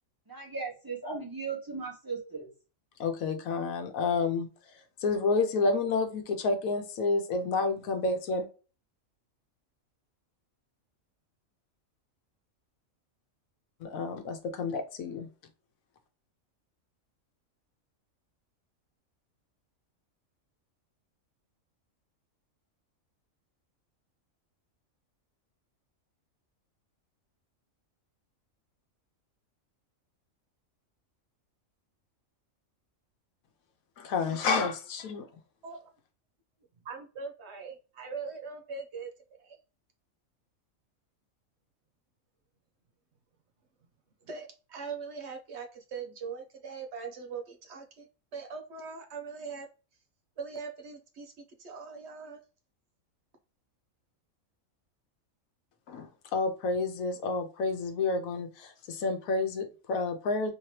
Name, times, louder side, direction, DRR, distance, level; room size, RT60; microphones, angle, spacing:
voice 1, 0.3-2.5, right 4 dB, 15° right, -2 dB, 1.0 m, -37 dB
voice 2, 3.0-4.5 5.0-8.5 13.8-15.3 34.0-35.3 55.9-60.5, left 3 dB, 85° left, 5 dB, 1.1 m, -30 dB
voice 3, 36.8-39.1 39.4-39.6 44.2-49.7 50.4-51.3 51.6-52.4, right 5 dB, 60° right, 3 dB, 0.9 m, -41 dB
3.2 x 2.8 x 3.1 m, 0.33 s
omnidirectional pair, 1.4 m